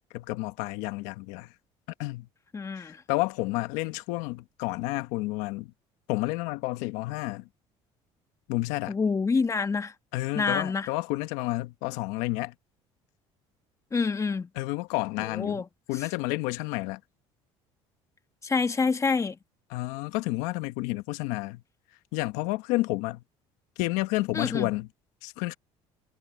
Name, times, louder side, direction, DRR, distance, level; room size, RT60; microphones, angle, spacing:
voice 1, 0.1-1.5 2.0-2.3 2.7-5.7 6.1-7.5 8.5-9.0 10.1-12.5 14.6-15.6 15.9-17.0 19.7-21.6 22.1-23.2 23.8-24.9 25.2-25.6, left 20 dB, 85° left, 1.2 m, -30 dB
voice 2, 2.5-3.0 8.9-9.9 10.3-10.9 13.9-14.5 15.3-15.6 18.4-19.4 24.3-24.7, left 4 dB, 25° left, 1.6 m, -27 dB
supercardioid pair, 95°, 12 cm